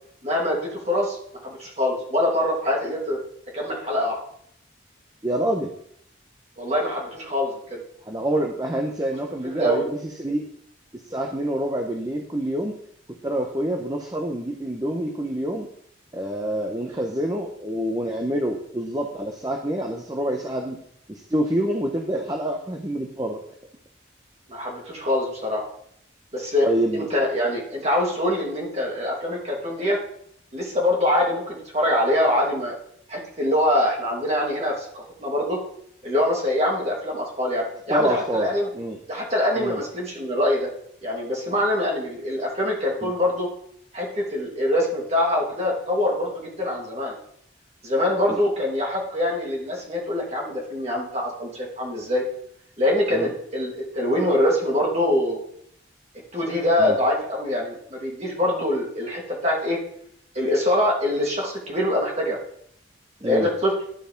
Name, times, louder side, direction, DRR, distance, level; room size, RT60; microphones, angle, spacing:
voice 1, 0.2-1.2 1.4-3.2 3.5-4.2 6.6-7.8 9.4-9.8 24.5-25.6 26.3-30.0 30.5-32.8 33.1-35.6 36.0-38.7 39.1-40.7 41.0-43.5 43.9-47.2 47.8-52.2 52.8-55.4 56.3-59.8 60.3-62.4 63.2-63.7, left 1 dB, 35° right, -2 dB, 2.5 m, -24 dB
voice 2, 5.2-5.7 8.1-10.4 11.1-12.7 13.2-15.7 16.1-20.8 21.1-23.4 26.6-27.1 37.9-38.5 38.7-39.0 39.6-39.8 43.0-43.1 48.3-48.4 53.1-53.3 56.8-57.0 63.2-63.5, right 1 dB, 20° right, 2 dB, 0.7 m, -26 dB
11.5 x 4.7 x 5.2 m, 0.68 s
head